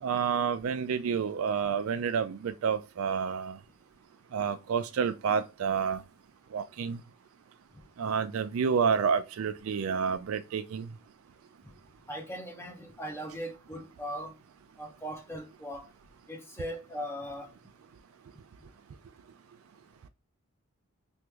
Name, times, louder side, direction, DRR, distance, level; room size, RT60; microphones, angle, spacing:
voice 1, 0.0-3.6 4.3-6.0 6.5-7.0 8.0-10.9, right 6 dB, 65° right, 0.3 m, -29 dB
voice 2, 12.1-14.4 14.8-15.9 16.3-17.5, equal, 10° left, 0.7 m, -39 dB
3.0 x 2.6 x 3.4 m
head